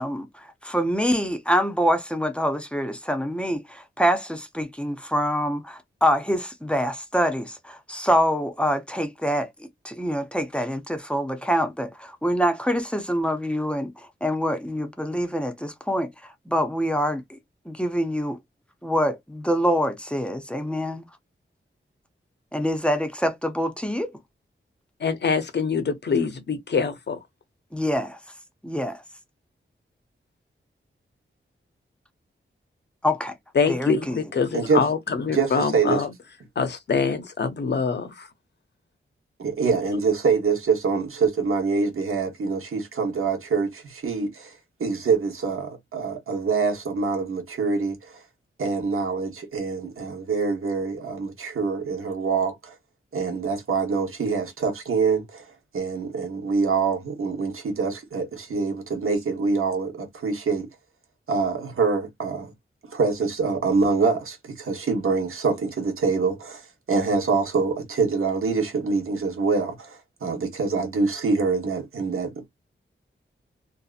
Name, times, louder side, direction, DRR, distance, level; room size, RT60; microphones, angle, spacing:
voice 1, 0.0-9.5 9.8-17.2 17.7-18.4 18.8-21.1 22.5-24.1 27.7-28.2 28.6-29.0 33.0-33.3 33.7-34.3, equal, 5° left, 0.5 m, -25 dB
voice 2, 25.0-27.2 33.6-36.1 36.6-38.3, left 5 dB, 55° left, 0.6 m, -24 dB
voice 3, 34.5-34.8 35.3-36.0 39.4-48.2 48.6-52.7 53.1-55.5 55.7-60.7 61.3-62.5 62.8-72.5, right 4 dB, 85° right, 1.0 m, -25 dB
2.7 x 2.4 x 2.4 m
wide cardioid pair, 115°, 21 cm